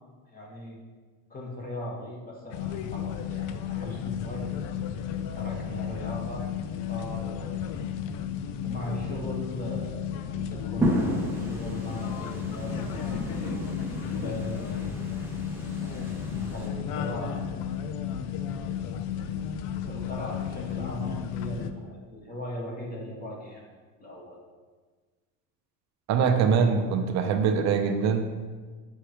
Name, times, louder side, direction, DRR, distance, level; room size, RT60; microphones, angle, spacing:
voice 1, 0.3-0.8 1.3-4.4 5.3-6.4 6.9-7.7 8.6-13.3 14.1-15.0 15.5-17.5 19.8-23.6 24.0-24.4, left 1 dB, 20° left, -3 dB, 1.3 m, -39 dB
sound 1, 2.5-21.7, left 9 dB, 55° left, 0.5 m, -33 dB
sound 2, 10.8-16.7, right 1 dB, 5° right, 0.8 m, -33 dB
voice 2, 26.1-28.2, right 6 dB, 45° right, 6 dB, 0.7 m, -23 dB
7.4 x 4.9 x 3.0 m, 1.4 s
cardioid pair, 145°, 39 cm